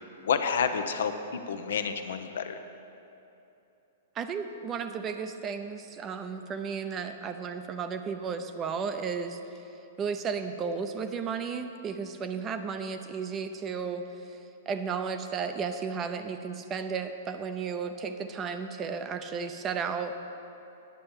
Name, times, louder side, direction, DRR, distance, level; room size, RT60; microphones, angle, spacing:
voice 1, 0.2-2.6, left 6 dB, 80° left, 8 dB, 0.7 m, -29 dB
voice 2, 4.1-9.4 10.0-14.4 14.7-20.1, right 6 dB, 25° right, 8 dB, 0.6 m, -34 dB
9.9 x 6.5 x 7.2 m, 2.9 s
hypercardioid pair, 140°, 0 cm